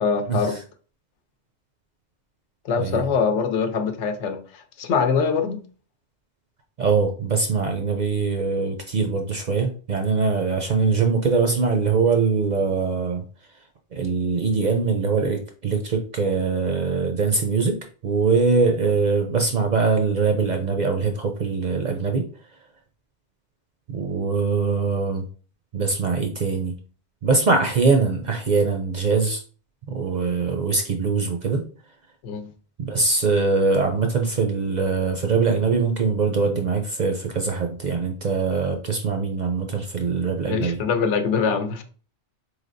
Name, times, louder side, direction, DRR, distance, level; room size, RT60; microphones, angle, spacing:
voice 1, 0.0-0.6 2.6-5.6 32.2-32.5 40.5-41.8, left 5 dB, 85° left, 7 dB, 0.9 m, -23 dB
voice 2, 6.8-13.2 13.9-17.8 18.0-22.2 23.9-25.2 25.7-26.8 27.2-29.4 29.9-31.6 32.8-40.8, right 4 dB, 55° right, 4 dB, 0.5 m, -22 dB
4.0 x 3.3 x 2.5 m, 0.39 s
omnidirectional pair, 1.2 m